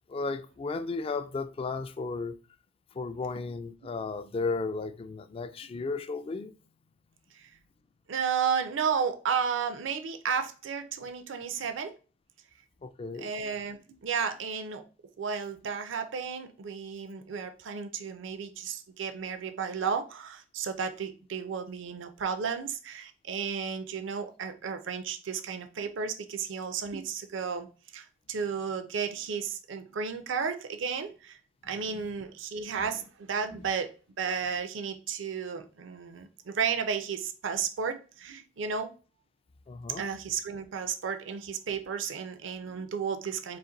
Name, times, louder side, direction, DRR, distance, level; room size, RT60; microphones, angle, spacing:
voice 1, 0.1-2.4 2.9-6.5 12.8-13.3 31.9-32.1 32.8-33.0 39.7-40.0, left 3 dB, 30° left, 0.3 m, -34 dB
voice 2, 8.1-11.9 13.2-14.8 15.2-27.7 27.9-31.4 31.6-38.9 40.0-43.6, right 6 dB, 65° right, 0.5 m, -33 dB
4.1 x 2.5 x 3.8 m
head